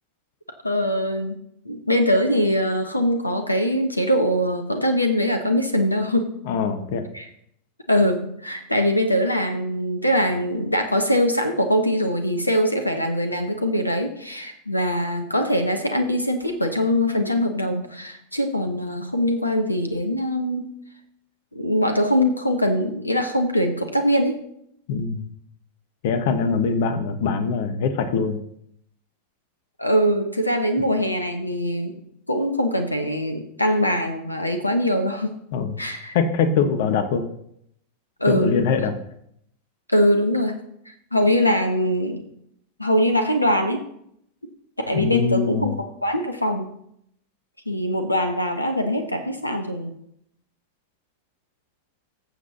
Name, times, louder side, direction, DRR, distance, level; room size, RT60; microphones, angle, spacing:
voice 1, 0.6-1.4 1.6-6.3 7.1-7.2 7.9-20.7 21.5-24.4 29.8-31.9 32.3-35.4 35.8-36.1 38.2-38.5 39.9-40.6 40.9-42.2 42.8-43.8 44.9-46.7 47.7-49.9, equal, 85° left, 6 dB, 0.9 m, -22 dB
voice 2, 6.5-7.1 24.9-25.2 26.0-28.4 35.5-35.8 36.1-37.2 38.3-38.9 44.9-45.8, left 5 dB, 50° left, 9 dB, 1.1 m, -23 dB
18.5 x 7.4 x 2.8 m, 0.73 s
figure-of-eight pair, 90°, 0 cm